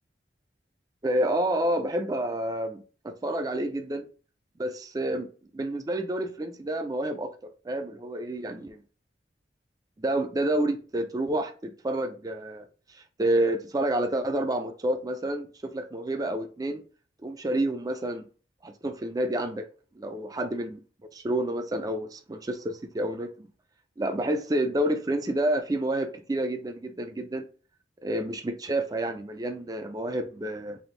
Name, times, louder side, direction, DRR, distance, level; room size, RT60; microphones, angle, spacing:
voice 1, 1.0-4.0 4.6-5.3 5.5-7.3 7.6-8.8 10.0-12.7 13.2-16.8 17.2-18.2 18.6-19.7 20.0-20.8 21.1-23.5 24.0-27.5 28.0-30.8, right 1 dB, 20° right, 0.4 m, -29 dB
3.5 x 2.6 x 3.8 m
head